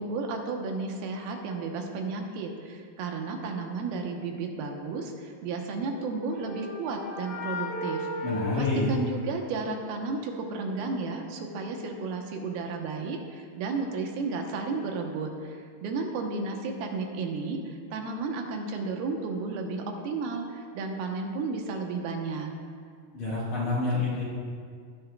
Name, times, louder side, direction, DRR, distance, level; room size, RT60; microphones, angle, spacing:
voice 1, 0.0-8.3 8.6-22.5, right 4 dB, 75° right, 2 dB, 2.8 m, -33 dB
sound 1, 5.8-9.7, left 2 dB, 75° left, 5.0 m, -36 dB
voice 2, 8.2-8.9 23.1-24.2, left 2 dB, 60° left, -9 dB, 2.6 m, -27 dB
19.5 x 9.9 x 2.3 m, 2.1 s
omnidirectional pair, 4.5 m